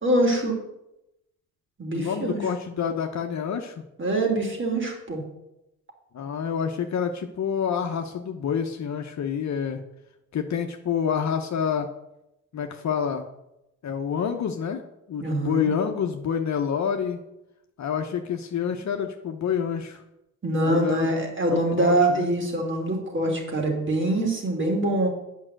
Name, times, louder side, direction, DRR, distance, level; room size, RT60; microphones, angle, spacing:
voice 1, 0.0-0.5 1.8-2.4 4.0-5.2 15.2-15.7 20.4-25.1, right 1 dB, 35° right, 1 dB, 3.2 m, -24 dB
voice 2, 1.9-3.8 6.1-9.8 10.3-11.9 12.5-13.3 13.8-14.8 15.1-17.2 17.8-20.0 20.6-21.1 21.5-22.3, left 7 dB, 55° left, 4 dB, 0.9 m, -28 dB
8.8 x 5.6 x 7.6 m, 0.88 s
cardioid pair, 80°, 32 cm